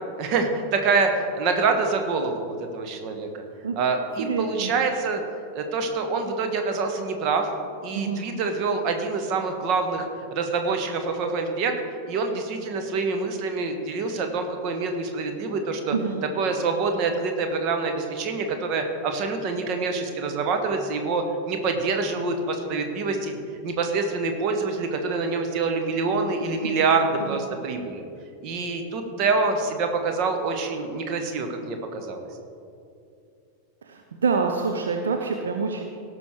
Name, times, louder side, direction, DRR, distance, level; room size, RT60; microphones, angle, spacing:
voice 1, 0.2-3.4 3.8-5.2 5.5-7.5 7.8-11.7 12.1-15.9 16.4-28.0 28.4-32.2, right 4 dB, 40° right, 5 dB, 1.3 m, -26 dB
voice 2, 4.2-4.7 7.9-8.3 15.9-16.2 26.6-26.9 27.3-27.4 33.8-35.8, right 5 dB, 65° right, 3 dB, 0.8 m, -27 dB
17.5 x 6.3 x 4.6 m, 2.5 s
figure-of-eight pair, 90°, 0 cm